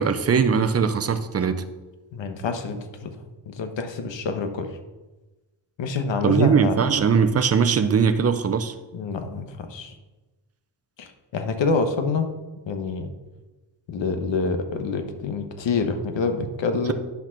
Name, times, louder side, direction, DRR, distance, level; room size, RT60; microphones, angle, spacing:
voice 1, 0.0-1.6 6.2-8.7, right 6 dB, 35° right, 0.6 m, -20 dB
voice 2, 2.1-3.2 3.5-4.8 5.8-6.8 8.9-9.9 11.0-12.3 12.7-13.1 13.9-16.9, left 4 dB, 90° left, 1.3 m, -27 dB
10.0 x 6.3 x 5.9 m
wide cardioid pair, 170°, 43 cm